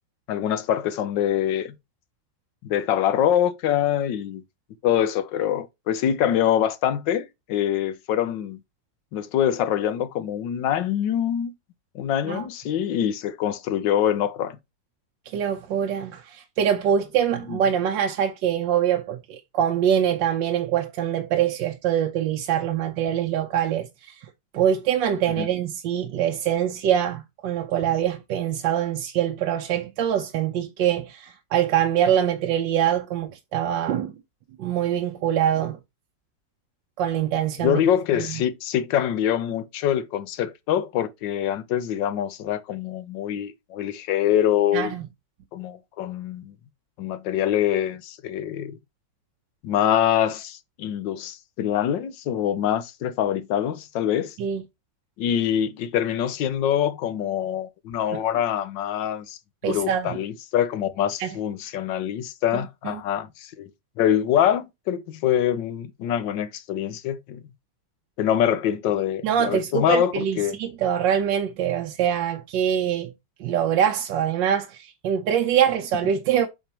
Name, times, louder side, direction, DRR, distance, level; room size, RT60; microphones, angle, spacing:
voice 1, 0.3-1.7 2.6-4.4 4.8-8.6 9.1-11.5 11.9-14.6 17.5-17.6 25.3-25.5 37.6-44.9 45.5-46.5 47.0-48.8 49.6-54.4 55.2-59.4 59.6-63.7 64.0-67.4 68.2-70.6, left 10 dB, 85° left, 1.5 m, -24 dB
voice 2, 15.3-24.3 24.5-34.1 34.6-35.8 37.0-37.8 44.7-45.0 54.4-54.6 59.6-60.2 61.2-61.3 62.8-63.0 69.2-73.1 73.4-76.5, right 9 dB, 90° right, 1.4 m, -24 dB
7.9 x 4.5 x 2.9 m
omnidirectional pair, 1.9 m